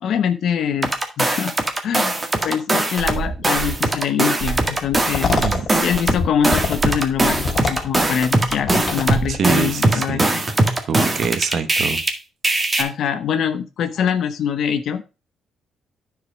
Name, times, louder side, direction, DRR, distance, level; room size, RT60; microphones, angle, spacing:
voice 1, 0.0-1.5 1.8-2.2 2.4-5.3 5.8-10.2 12.8-15.0, left 8 dB, 70° left, 0.9 m, -24 dB
sound 1, 0.8-3.2 3.4-12.1 12.4-12.8, right 2 dB, 25° right, 1.8 m, -20 dB
sound 2, 3.0-3.8 4.4-4.8 5.4-5.6 6.7-7.0 9.1-9.4, right 6 dB, 40° right, 1.3 m, -29 dB
sound 3, 4.9-9.8, left 5 dB, 50° left, 3.0 m, -27 dB
voice 2, 5.3-5.7 9.3-10.2 10.9-12.0, right 6 dB, 60° right, 1.1 m, -24 dB
10.0 x 4.7 x 4.9 m
cardioid pair, 90°, 0 cm